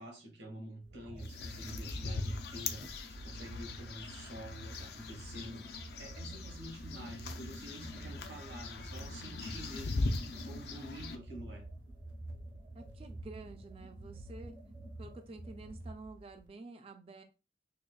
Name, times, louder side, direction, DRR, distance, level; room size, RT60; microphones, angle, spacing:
voice 1, 0.0-11.7, equal, 70° right, 1.2 m, -49 dB
sound 1, 0.8-16.5, right 1 dB, 85° right, 0.8 m, -48 dB
sound 2, 1.2-11.2, left 3 dB, 60° left, 0.4 m, -40 dB
voice 2, 12.7-14.5 15.0-17.2, right 3 dB, 30° right, 0.3 m, -49 dB
4.9 x 2.2 x 2.2 m
head